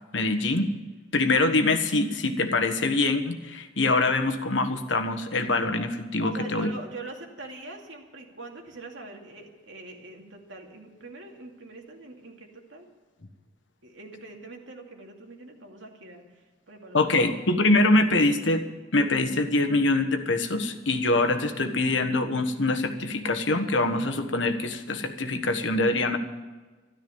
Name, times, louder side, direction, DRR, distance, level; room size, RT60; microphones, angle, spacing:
voice 1, 0.1-0.7 1.1-6.7 16.9-18.6 18.9-26.2, left 2 dB, 75° left, 7 dB, 1.4 m, -24 dB
voice 2, 6.2-12.9 13.8-17.3, right 2 dB, 85° right, 1 dB, 2.6 m, -43 dB
13.0 x 12.5 x 7.1 m, 1.3 s
head